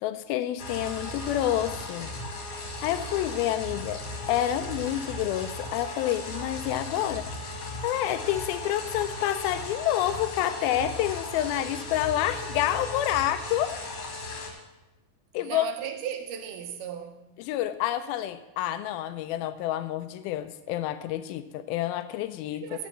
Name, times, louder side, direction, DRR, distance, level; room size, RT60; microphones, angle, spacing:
voice 1, 0.0-2.1 2.8-4.0 4.3-13.8 15.3-15.7 17.4-22.6, left 12 dB, 85° left, 2.1 m, -28 dB
sound 1, 0.6-14.5, left 2 dB, 45° left, 2.2 m, -37 dB
voice 2, 15.4-17.2 22.5-22.9, right 9 dB, 75° right, 2.6 m, -36 dB
15.5 x 5.2 x 7.3 m
omnidirectional pair, 4.7 m